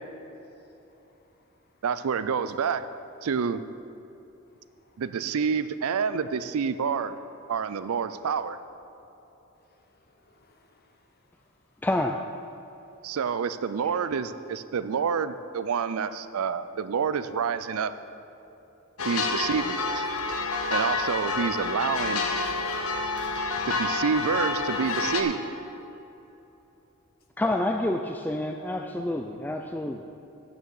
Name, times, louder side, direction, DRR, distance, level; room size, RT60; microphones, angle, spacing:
voice 1, 0.2-1.8 4.5-5.0 9.6-11.6, left 2 dB, 50° left, 1.1 m, -63 dB
voice 2, 1.8-2.8 3.2-3.6 5.0-7.1 7.5-8.6 13.0-17.9 19.0-20.1 20.7-22.2 23.7-25.4, right 6 dB, 80° right, 0.4 m, -28 dB
voice 3, 11.8-12.2 27.4-30.0, left 1 dB, 10° left, 0.3 m, -28 dB
sound 1, 19.0-25.2, left 3 dB, 80° left, 0.9 m, -28 dB
9.1 x 6.4 x 7.1 m
head